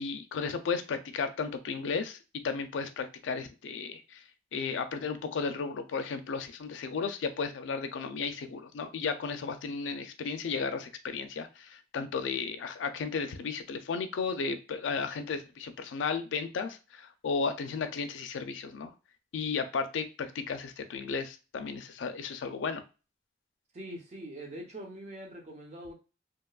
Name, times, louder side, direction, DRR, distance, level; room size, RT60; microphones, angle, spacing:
voice 1, 0.0-2.2 2.4-4.2 4.5-18.9 19.3-22.8, left 5 dB, 90° left, 0.4 m, -34 dB
voice 2, 23.7-25.9, right 1 dB, 35° right, 0.6 m, -43 dB
2.9 x 2.2 x 2.3 m
head